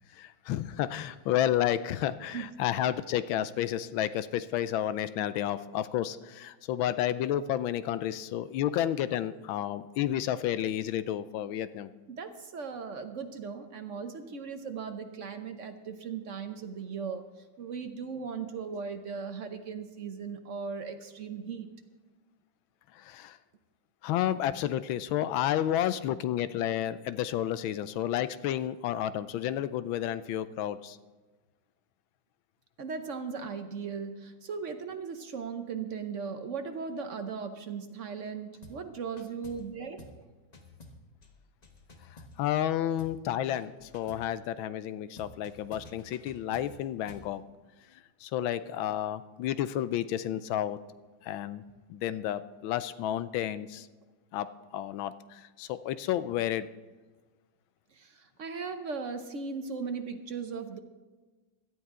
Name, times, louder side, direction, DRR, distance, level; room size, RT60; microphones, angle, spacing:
voice 1, 0.1-11.9 22.9-23.4 24.0-31.0 42.1-47.4 47.9-50.8 51.2-51.6 51.9-53.9 54.3-54.5 54.7-56.7, left 11 dB, 80° left, 14 dB, 1.4 m, -31 dB
voice 2, 12.1-17.3 17.6-21.7 32.8-40.1 57.9-60.8, right 5 dB, 55° right, 7 dB, 0.8 m, -38 dB
sound 1, 38.6-38.9 39.2-39.7 40.0-40.2 40.5-42.7 43.0-43.2 43.5-44.3 45.2-47.3, left 2 dB, 25° left, 0.9 m, -51 dB
17.0 x 12.5 x 3.7 m, 1.3 s
omnidirectional pair, 2.2 m